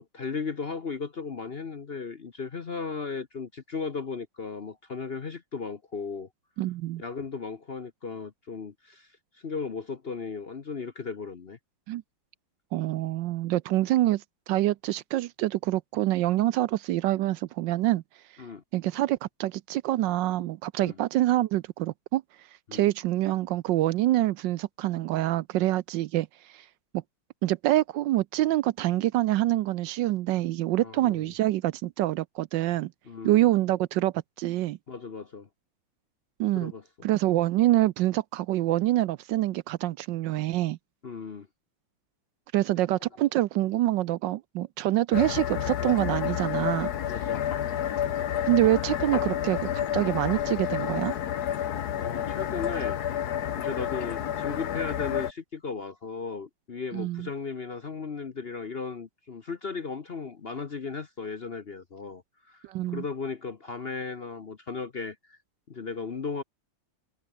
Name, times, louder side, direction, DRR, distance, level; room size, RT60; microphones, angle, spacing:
voice 1, 0.0-6.3 7.0-9.1 9.3-11.6 18.4-18.6 20.8-20.9 22.7-22.9 30.8-31.3 33.1-33.5 34.9-35.5 36.5-36.8 41.0-41.5 47.0-47.4 51.6-53.0 53.5-62.2 62.5-65.4 65.7-66.4, left 5 dB, 40° left, 0.9 m, -36 dB
voice 2, 6.6-7.0 11.9-12.0 12.7-18.0 18.7-22.2 22.7-26.6 26.9-27.0 27.4-32.9 33.2-34.8 36.4-36.7 37.0-40.8 42.5-46.9 48.4-51.1 56.9-57.3 62.6-63.0, right 15 dB, 75° right, 1.2 m, -26 dB
sound 1, 45.1-55.3, left 10 dB, 60° left, 1.4 m, -30 dB
omnidirectional pair, 2.1 m